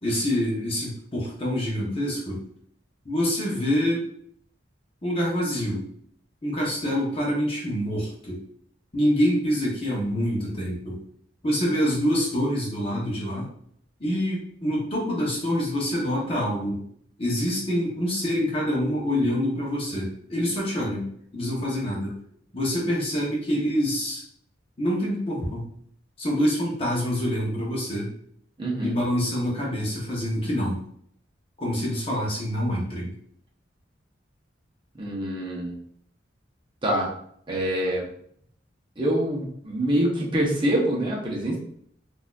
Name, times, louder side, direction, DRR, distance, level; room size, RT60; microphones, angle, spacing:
voice 1, 0.0-2.4 3.0-4.0 5.0-5.8 6.4-8.4 8.9-11.0 11.4-13.5 14.0-16.8 17.2-22.2 22.5-24.2 24.8-25.7 26.2-28.1 28.8-30.8 31.6-33.1, equal, 30° left, -4 dB, 0.8 m, -26 dB
voice 2, 28.6-28.9 35.0-35.7 36.8-37.1 37.5-38.1 39.0-41.6, right 1 dB, 25° right, -3 dB, 0.9 m, -25 dB
4.0 x 2.6 x 2.4 m, 0.65 s
head